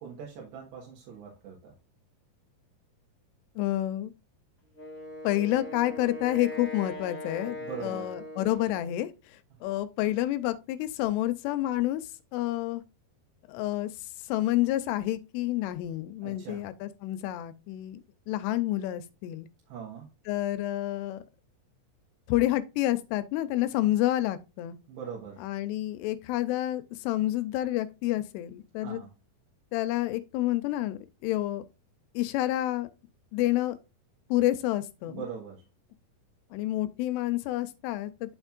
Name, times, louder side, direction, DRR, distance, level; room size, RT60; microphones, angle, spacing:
voice 1, 0.0-1.7 7.6-8.1 16.2-16.6 19.7-20.1 24.9-25.4 28.8-29.1 35.0-35.6, right 7 dB, 90° right, 3.6 m, -41 dB
voice 2, 3.6-4.1 5.2-12.0 12.3-12.8 13.5-13.9 14.3-19.5 20.3-21.2 22.3-24.8 25.4-29.0 29.7-31.6 32.1-32.9 33.3-33.8 34.3-35.2 36.5-38.3, left 15 dB, 85° left, 2.7 m, -29 dB
Wind instrument woodwind instrument, 4.7-9.0, left 1 dB, 20° left, 1.9 m, -40 dB
11.5 x 4.4 x 2.4 m
omnidirectional pair, 4.8 m